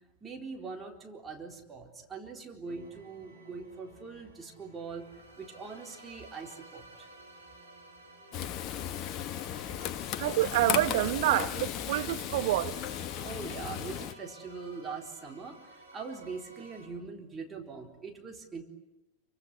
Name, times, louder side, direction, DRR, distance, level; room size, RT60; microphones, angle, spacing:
voice 1, 0.2-5.1 5.4-7.1 13.2-18.6, right 4 dB, 15° right, 4.2 m, -42 dB
sound 1, 2.7-16.9, right 1 dB, 80° right, 7.4 m, -53 dB
Frying (food), 8.3-14.1, left 10 dB, 35° left, 1.1 m, -35 dB
voice 2, 10.2-12.8, right 16 dB, 50° right, 1.1 m, -27 dB
28.0 x 25.0 x 8.4 m
figure-of-eight pair, 90°, 0 cm